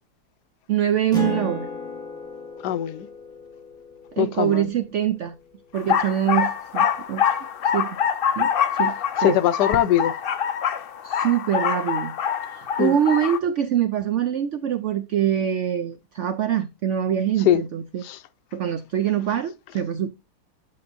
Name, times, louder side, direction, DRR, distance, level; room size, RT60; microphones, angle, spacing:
voice 1, 0.7-1.7 4.1-5.3 5.7-7.2 7.7-8.0 8.4-9.4 11.0-12.1 12.5-18.0 18.5-20.1, right 10 dB, 75° right, 0.6 m, -24 dB
Acoustic guitar, 1.1-6.1, left 3 dB, ahead, 2.8 m, -36 dB
voice 2, 2.6-3.1 4.2-4.7 9.2-10.1 12.8-13.0 17.4-17.6 18.0-18.2, left 11 dB, 85° left, 1.2 m, -21 dB
sound 1, 5.7-13.4, left 8 dB, 65° left, 0.5 m, -25 dB
8.5 x 6.7 x 2.6 m
omnidirectional pair, 1.8 m